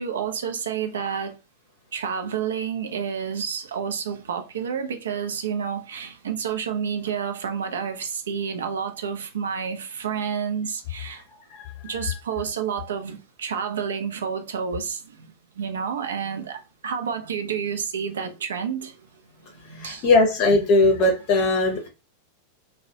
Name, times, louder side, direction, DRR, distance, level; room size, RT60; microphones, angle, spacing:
voice 1, 0.0-1.4 1.9-11.2 11.8-19.0 19.4-20.1, right 7 dB, 65° right, 0.4 m, -30 dB
voice 2, 19.8-21.9, left 2 dB, 45° left, 0.6 m, -19 dB
2.2 x 2.1 x 2.7 m
figure-of-eight pair, 90°, 0 cm